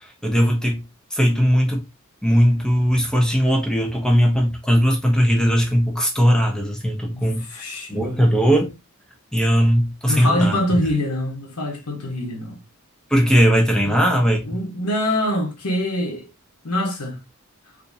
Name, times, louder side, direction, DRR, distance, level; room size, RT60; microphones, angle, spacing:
voice 1, 0.0-0.8 1.1-1.8 2.2-7.4 7.9-8.7 9.3-10.5 13.1-14.6, equal, 5° left, 0.8 m, -18 dB
voice 2, 7.1-8.4 10.1-12.6 14.4-16.2 16.6-17.2, left 1 dB, 85° left, 1.0 m, -24 dB
3.5 x 2.7 x 2.7 m
head